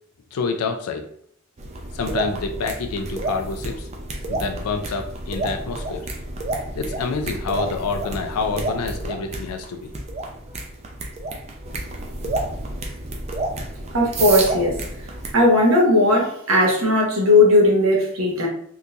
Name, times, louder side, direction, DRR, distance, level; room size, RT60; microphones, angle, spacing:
voice 1, 0.3-1.1 1.9-3.9 4.3-6.1 6.8-9.9, left 4 dB, 85° left, 5 dB, 0.4 m, -27 dB
sound 1, 1.6-15.3, right 2 dB, 30° right, 0.4 m, -30 dB
voice 2, 13.9-14.8 15.3-18.5, left 1 dB, 65° right, -1 dB, 1.0 m, -17 dB
3.7 x 2.8 x 2.4 m, 0.66 s
head